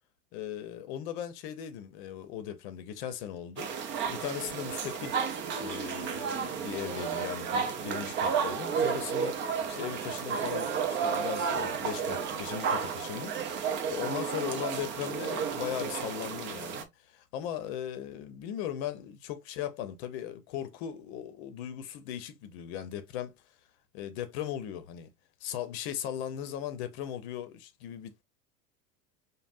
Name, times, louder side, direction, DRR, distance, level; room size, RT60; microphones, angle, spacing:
voice 1, 0.3-5.2 5.6-23.3 23.9-25.1 25.4-28.2, left 10 dB, 45° left, 0.7 m, -38 dB
sound 1, 3.6-16.8, right 6 dB, 25° right, 0.5 m, -32 dB
5.1 x 2.1 x 2.5 m
figure-of-eight pair, 85°, 46 cm